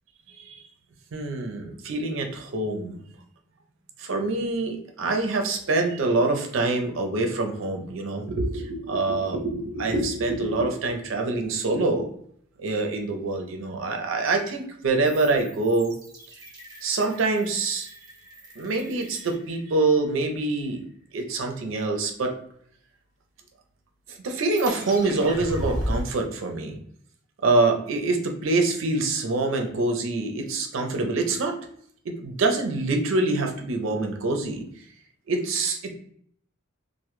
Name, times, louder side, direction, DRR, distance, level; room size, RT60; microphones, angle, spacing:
voice 1, 0.3-0.7 1.1-3.0 4.0-12.1 12.6-16.0 16.8-17.9 18.6-20.8 21.1-22.4 24.1-26.8 27.4-31.6 32.0-34.6 35.3-35.9, right 3 dB, 65° right, 4 dB, 0.4 m, -25 dB
sound 1, 15.0-20.1 24.4-26.0, equal, 20° right, 0.6 m, -36 dB
2.1 x 2.0 x 2.9 m, 0.63 s
head